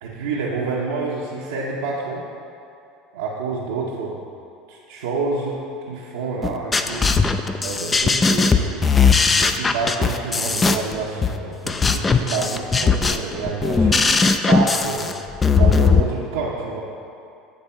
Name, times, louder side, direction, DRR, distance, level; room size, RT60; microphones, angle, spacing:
voice 1, 0.0-2.2 3.1-4.2 4.7-5.6 5.9-7.2 7.6-8.8 9.4-14.0 14.5-15.1 15.5-16.8, right 4 dB, 85° right, -6 dB, 0.7 m, -28 dB
sound 1, 6.4-16.0, left 4 dB, 25° left, 0.4 m, -18 dB
8.8 x 3.4 x 4.3 m, 2.7 s
hypercardioid pair, 90°, 0 cm